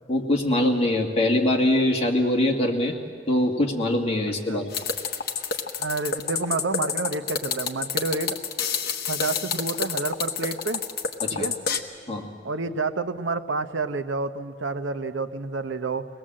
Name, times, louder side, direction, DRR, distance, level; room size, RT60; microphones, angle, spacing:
voice 1, 0.1-2.9 3.3-4.6 11.2-11.5 12.1-12.3, left 1 dB, 35° left, 0 dB, 2.1 m, -23 dB
sound 1, 4.7-11.8, left 6 dB, 55° left, 1.2 m, -28 dB
voice 2, 5.8-8.4 9.1-10.8 11.3-11.5 12.4-16.1, right 3 dB, 85° right, 10 dB, 0.8 m, -29 dB
23.5 x 19.0 x 7.5 m, 2.2 s
head